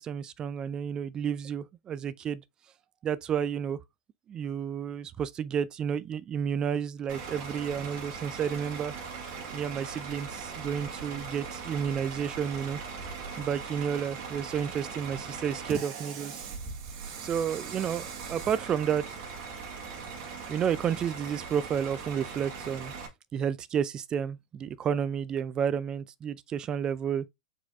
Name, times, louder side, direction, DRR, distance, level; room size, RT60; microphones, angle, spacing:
voice 1, 0.0-2.4 3.0-3.8 4.3-8.9 9.5-12.8 13.4-16.4 17.2-19.2 20.5-22.9 23.3-27.3, right 8 dB, 30° right, 0.4 m, -31 dB
Bus / Idling, 7.1-23.1, right 5 dB, 50° right, 1.6 m, -40 dB
4.7 x 4.0 x 2.4 m
hypercardioid pair, 100°, 3 cm